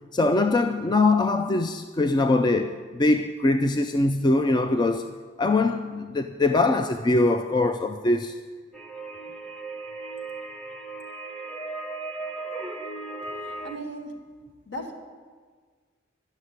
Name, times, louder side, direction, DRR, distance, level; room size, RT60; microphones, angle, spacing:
voice 1, 0.1-5.1 5.4-8.4, left 2 dB, 25° left, 0.4 m, -22 dB
sound 1, 8.7-13.8, right 3 dB, 5° left, 0.9 m, -36 dB
voice 2, 13.4-14.3 14.7-14.9, right 1 dB, 65° left, 1.9 m, -37 dB
11.5 x 6.6 x 9.4 m
head